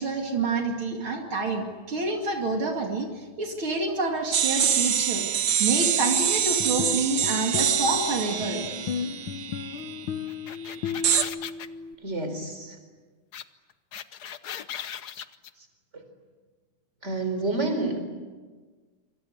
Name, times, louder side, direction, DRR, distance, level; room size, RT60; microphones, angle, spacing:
voice 1, 0.0-8.6, right 3 dB, 75° right, 2 dB, 3.3 m, -28 dB
sound 1, 4.3-10.0 11.0-11.2, right 8 dB, 60° right, 1.6 m, -25 dB
sound 2, 6.4-11.9, left 7 dB, 75° left, 1.9 m, -35 dB
sound 3, 10.3-11.7 13.3-13.4 13.7-15.5, left 9 dB, 55° left, 1.3 m, -37 dB
voice 2, 12.0-12.8 17.0-18.0, right 2 dB, 30° right, 7 dB, 4.5 m, -28 dB
27.0 x 25.5 x 8.0 m, 1.4 s
omnidirectional pair, 2.3 m